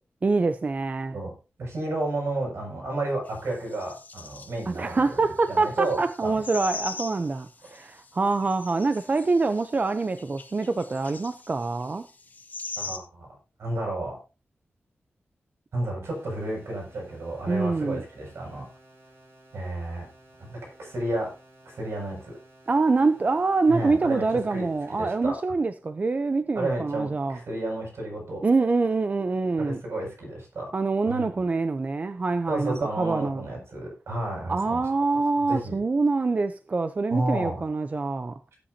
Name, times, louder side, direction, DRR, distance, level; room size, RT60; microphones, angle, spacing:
voice 1, 0.2-1.2 4.7-12.1 17.5-18.0 22.7-27.4 28.4-29.8 30.7-33.4 34.5-38.3, right 3 dB, 35° right, 0.6 m, -25 dB
voice 2, 1.6-5.2 5.5-6.4 12.8-13.3 13.6-14.2 15.7-18.7 19.5-20.1 20.4-21.3 21.7-22.3 23.7-24.2 24.5-24.7 25.0-25.4 26.5-28.4 29.6-30.7 31.1-31.3 32.5-34.8 35.4-35.8 37.1-37.6, right 2 dB, 80° right, 7.7 m, -31 dB
sound 1, 3.3-3.4 3.6-13.0, left 4 dB, 40° left, 1.3 m, -41 dB
sound 2, 16.0-25.0, right 1 dB, 60° right, 7.1 m, -55 dB
18.0 x 8.8 x 2.8 m
wide cardioid pair, 130°, 4 cm